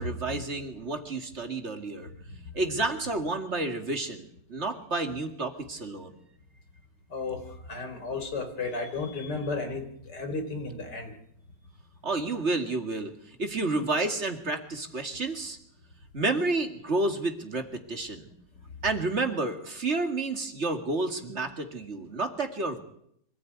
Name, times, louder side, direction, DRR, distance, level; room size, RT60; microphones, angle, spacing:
voice 1, 0.0-2.1 2.5-4.2 4.5-6.1 12.0-13.1 13.4-15.6 16.1-18.3 18.8-22.8, right 2 dB, 40° right, 6 dB, 2.4 m, -30 dB
voice 2, 7.1-11.1, left 3 dB, 70° left, 5 dB, 4.4 m, -34 dB
25.0 x 14.5 x 9.5 m, 0.71 s
omnidirectional pair, 1.9 m